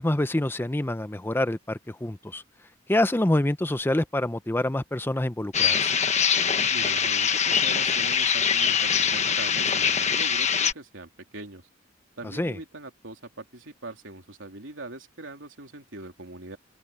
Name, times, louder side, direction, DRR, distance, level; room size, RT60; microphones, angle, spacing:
voice 1, 0.0-2.4 2.9-5.9 12.3-12.6, left 1 dB, 10° left, 0.6 m, -26 dB
sound 1, 5.5-10.7, left 7 dB, 35° left, 1.3 m, -23 dB
voice 2, 6.7-11.6 12.2-16.6, right 2 dB, 80° right, 3.3 m, -41 dB
open air
head